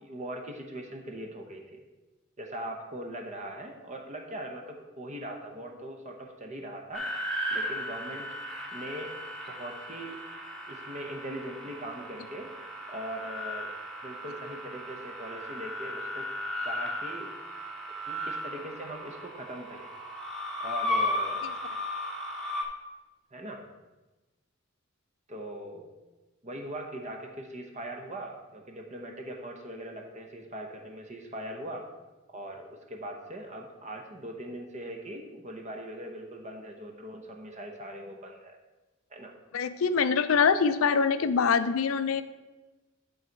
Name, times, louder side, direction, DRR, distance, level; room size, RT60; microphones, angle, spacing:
voice 1, 0.0-1.8 2.4-8.3 8.7-9.1 9.5-10.2 10.7-13.7 14.0-16.3 16.6-17.3 18.0-19.9 20.6-21.5 23.3-23.6 25.3-25.9 26.4-31.9 32.3-38.6 39.1-39.3, right 1 dB, 35° right, 2 dB, 0.8 m, -41 dB
sound 1, 6.9-22.6, left 1 dB, ahead, 1.0 m, -35 dB
voice 2, 39.5-42.2, left 5 dB, 80° left, 12 dB, 0.5 m, -24 dB
10.5 x 4.0 x 4.6 m, 1.1 s
head